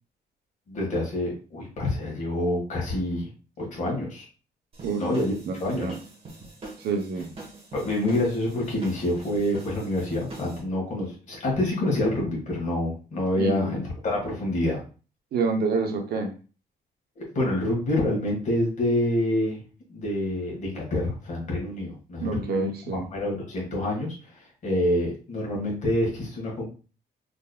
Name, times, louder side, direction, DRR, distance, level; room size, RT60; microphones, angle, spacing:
voice 1, 0.7-3.3 3.6-4.2 5.0-5.3 5.6-6.0 7.7-14.8 17.2-19.6 19.9-26.6, left 1 dB, 45° left, -2 dB, 1.6 m, -27 dB
sound 1, 4.7-10.6, right 2 dB, 35° right, 1.2 m, -44 dB
voice 2, 5.5-5.9 6.8-7.3 13.4-13.7 15.3-16.3 22.2-23.1, right 4 dB, 70° right, 4 dB, 0.8 m, -27 dB
3.8 x 3.4 x 2.2 m, 0.36 s
wide cardioid pair, 180°, 17 cm